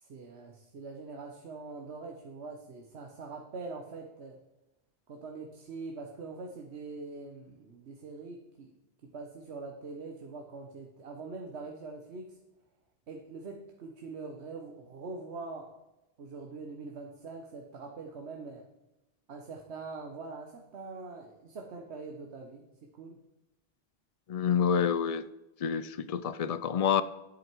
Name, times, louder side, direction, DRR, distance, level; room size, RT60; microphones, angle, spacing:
voice 1, 0.0-4.4 5.1-8.7 9.1-12.4 13.1-15.7 16.2-18.6 19.3-22.6 23.0-23.2, right 3 dB, 90° right, 2 dB, 1.3 m, -43 dB
voice 2, 24.3-25.2 25.6-27.0, left 7 dB, 45° left, 14 dB, 0.5 m, -28 dB
10.5 x 8.9 x 4.6 m, 0.95 s
omnidirectional pair, 1.1 m